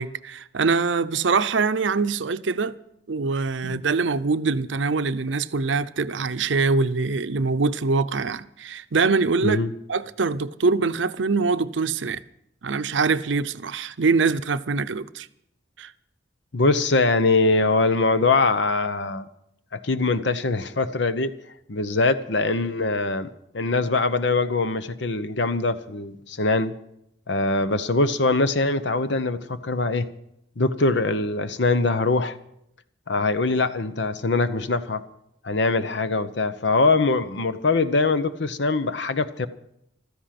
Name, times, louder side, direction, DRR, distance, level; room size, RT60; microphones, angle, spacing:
voice 1, 0.0-2.8 3.1-9.6 9.9-12.2 12.6-15.3 15.8-15.9, right 4 dB, 75° right, 0.6 m, -23 dB
voice 2, 16.5-19.3 19.7-21.3 21.7-23.3 23.5-26.7 27.3-30.0 30.6-32.4 33.1-35.0 35.4-39.5, left 3 dB, 70° left, 0.9 m, -22 dB
15.0 x 13.5 x 5.9 m
head